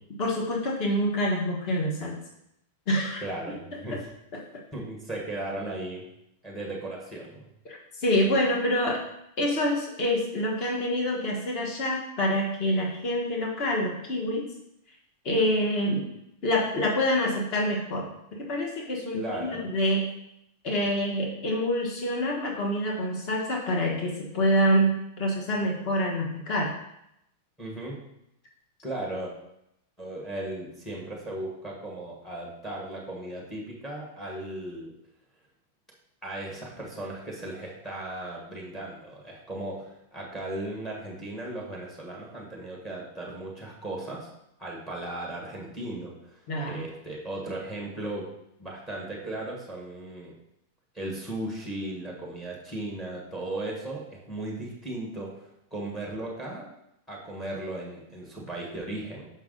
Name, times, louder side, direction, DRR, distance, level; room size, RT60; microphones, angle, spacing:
voice 1, 0.2-2.2 2.9-3.2 3.5-3.6 7.6-9.0 9.4-14.5 15.2-16.1 16.4-18.1 18.4-20.1 20.6-26.7 46.5-46.8, equal, 30° left, -1 dB, 1.3 m, -26 dB
voice 2, 3.2-4.0 4.7-6.0 6.4-7.4 19.1-19.7 27.6-28.0 28.8-29.3 30.0-34.9 36.2-44.3 44.6-48.3 48.6-50.4 50.9-56.7 57.1-59.3, right 1 dB, 10° left, -2 dB, 1.3 m, -36 dB
5.8 x 5.5 x 3.8 m, 0.80 s
supercardioid pair, 170°, 0 cm